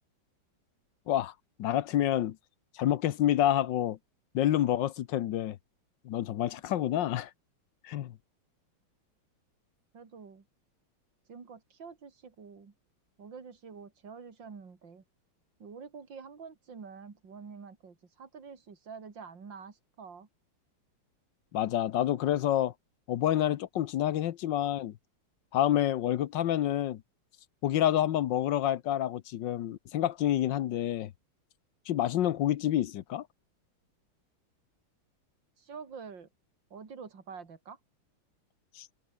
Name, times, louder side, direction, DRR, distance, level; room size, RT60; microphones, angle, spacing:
voice 1, 1.6-2.4 2.7-4.0 4.3-5.6 6.0-7.3 7.8-8.1 21.5-22.7 23.1-24.9 25.5-27.0 27.6-31.1 31.9-33.3 38.8-38.9, left 12 dB, 65° left, 1.4 m, -28 dB
voice 2, 9.9-10.5 11.3-12.7 13.2-15.0 15.6-20.3 35.6-36.3 36.7-37.8, right 5 dB, 60° right, 3.7 m, -47 dB
omnidirectional pair, 2.3 m